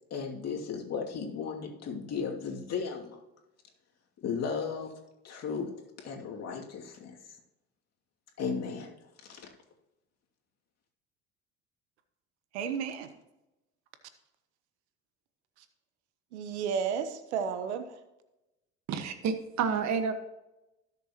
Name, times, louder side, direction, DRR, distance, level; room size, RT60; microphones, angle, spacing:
voice 1, 0.1-3.2 4.2-4.9 5.2-5.7 6.0-7.1 8.4-8.9 9.3-9.5, left 5 dB, 50° left, 0 dB, 2.6 m, -35 dB
voice 2, 12.5-13.1 16.3-18.0, right 7 dB, 80° right, 10 dB, 1.1 m, -32 dB
voice 3, 18.9-20.1, right 6 dB, 55° right, 8 dB, 1.5 m, -29 dB
17.5 x 6.9 x 3.0 m, 0.95 s
hypercardioid pair, 65°, 33 cm